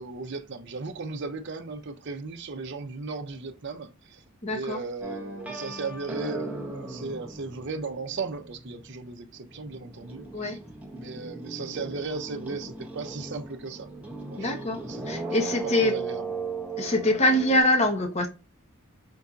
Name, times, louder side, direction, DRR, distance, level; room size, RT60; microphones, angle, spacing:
voice 1, 0.0-4.2 4.5-10.6 10.9-13.9 14.3-16.3, right 4 dB, 55° right, 0.6 m, -36 dB
voice 2, 4.4-4.8 10.3-10.6 14.4-14.8 15.1-15.9 16.8-18.3, left 1 dB, 30° left, 0.8 m, -24 dB
sound 1, 5.0-9.1 9.3-17.6, right 3 dB, 5° right, 0.6 m, -37 dB
5.3 x 2.6 x 2.3 m
head